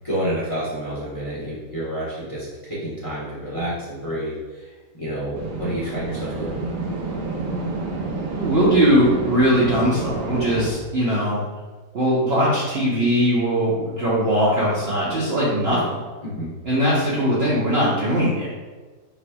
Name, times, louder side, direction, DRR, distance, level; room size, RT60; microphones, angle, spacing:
voice 1, 0.0-4.7 5.0-6.6 16.2-16.5, right 1 dB, 20° left, -8 dB, 1.1 m, -29 dB
sound 1, 5.3-10.7, right 3 dB, 75° right, 1.3 m, -29 dB
voice 2, 8.3-11.4 11.9-16.0 16.6-18.5, equal, 45° right, -8 dB, 0.9 m, -20 dB
6.7 x 3.2 x 2.3 m, 1.3 s
omnidirectional pair, 1.8 m